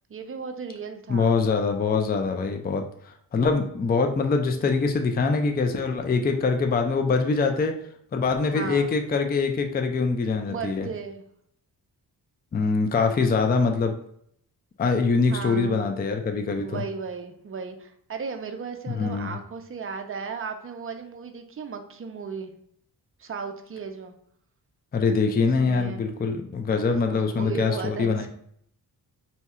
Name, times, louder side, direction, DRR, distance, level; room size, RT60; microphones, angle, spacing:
voice 1, 0.1-1.4 8.5-8.9 10.5-11.2 15.3-15.9 16.6-22.5 23.2-24.1 25.4-26.0 26.7-28.3, right 5 dB, 35° right, 6 dB, 0.5 m, -36 dB
voice 2, 1.1-2.8 3.3-7.8 8.1-10.9 12.5-13.9 14.8-16.8 18.9-19.3 24.9-28.3, left 4 dB, 25° left, 5 dB, 0.4 m, -24 dB
2.8 x 2.3 x 4.2 m, 0.68 s
cardioid pair, 75°, 41 cm